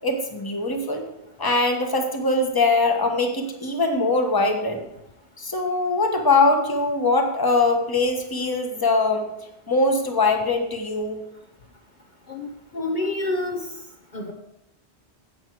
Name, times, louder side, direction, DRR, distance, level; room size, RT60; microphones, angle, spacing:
voice 1, 0.0-1.0 1.4-4.8 5.4-9.3 9.7-11.2, left 3 dB, 20° left, 3 dB, 1.3 m, -22 dB
voice 2, 12.3-13.6 14.1-14.3, left 2 dB, 45° left, 1 dB, 1.1 m, -28 dB
10.5 x 8.2 x 4.7 m, 0.85 s
omnidirectional pair, 1.1 m